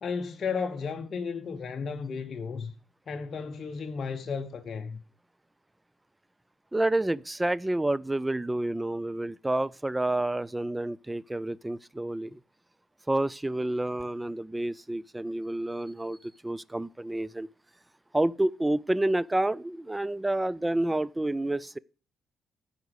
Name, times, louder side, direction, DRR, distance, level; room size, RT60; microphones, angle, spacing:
voice 1, 0.0-2.7 3.1-5.0, left 5 dB, 50° left, 0.9 m, -34 dB
voice 2, 6.7-12.4 13.1-17.5 18.1-21.8, right 1 dB, 10° right, 0.4 m, -29 dB
10.5 x 5.0 x 8.0 m
cardioid pair, 90°, 0 cm